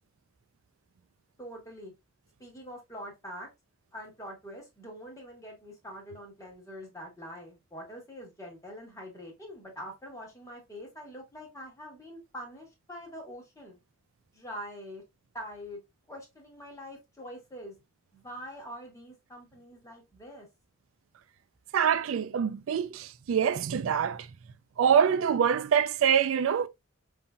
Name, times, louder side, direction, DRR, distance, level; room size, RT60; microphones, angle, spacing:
voice 1, 1.4-1.9 2.4-3.5 3.9-13.8 14.3-15.0 15.3-15.8 16.1-17.7 18.1-20.5, equal, 15° left, 1.3 m, -44 dB
voice 2, 21.7-24.3 24.8-26.7, right 8 dB, 75° right, 0.3 m, -25 dB
5.3 x 2.7 x 2.2 m
head